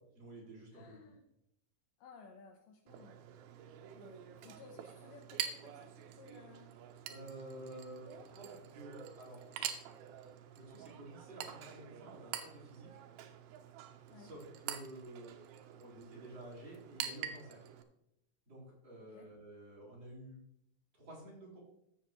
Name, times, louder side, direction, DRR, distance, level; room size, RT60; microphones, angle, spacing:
voice 1, 0.2-0.9 7.1-9.4 10.5-12.9 14.2-15.3 15.7-17.6 18.5-20.4 20.9-21.6, right 1 dB, 30° right, -6 dB, 4.8 m, -51 dB
voice 2, 0.7-1.2 2.0-3.2 3.9-6.7 14.1-14.3 19.1-19.3, left 5 dB, 75° left, 4 dB, 2.3 m, -57 dB
Chink clink, 2.9-17.8, right 10 dB, 90° right, 2.6 m, -46 dB
14.0 x 7.2 x 3.1 m, 0.77 s
omnidirectional pair, 4.1 m